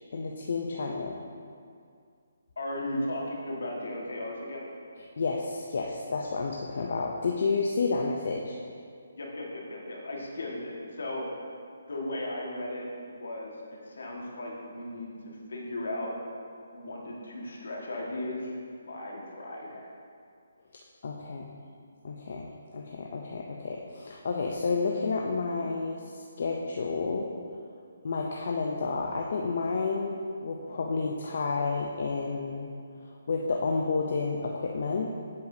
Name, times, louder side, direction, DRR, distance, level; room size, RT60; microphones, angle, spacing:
voice 1, 0.1-1.2 5.2-8.6 21.0-21.5 22.0-27.3 28.0-32.7 33.3-35.1, left 4 dB, 55° left, 0 dB, 0.5 m, -30 dB
voice 2, 2.6-4.6 9.1-11.2 11.9-16.1 16.7-18.5 18.9-19.9, left 1 dB, 75° left, -2 dB, 1.6 m, -36 dB
8.0 x 6.7 x 2.7 m, 2.3 s
hypercardioid pair, 160°, 0 cm